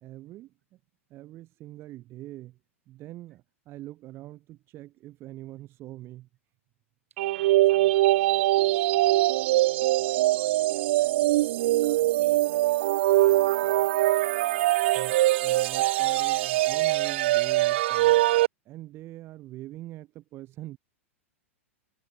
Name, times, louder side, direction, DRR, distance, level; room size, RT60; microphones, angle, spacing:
voice 1, 0.0-0.8 1.1-2.6 2.9-6.3 14.9-18.3 18.7-20.8, right 16 dB, 35° right, 1.9 m, -43 dB
voice 2, 7.1-12.8 13.0-13.9, right 7 dB, 70° right, 6.7 m, -55 dB
sound 1, 7.2-18.5, right 16 dB, 50° right, 0.8 m, -23 dB
figure-of-eight pair, 95°, 8 cm